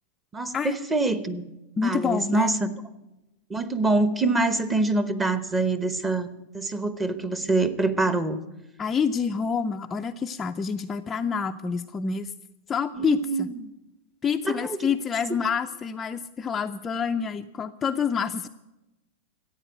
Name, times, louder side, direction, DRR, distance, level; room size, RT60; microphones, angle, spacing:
voice 1, 0.3-1.4 1.8-2.7 3.5-8.4 13.0-13.7 14.4-14.9, right 3 dB, 10° right, 12 dB, 0.9 m, -25 dB
voice 2, 1.8-2.5 8.8-12.3 12.7-13.5 14.2-18.5, left 6 dB, 15° left, 5 dB, 0.4 m, -27 dB
14.5 x 8.8 x 9.2 m, 0.98 s
supercardioid pair, 150°, 0 cm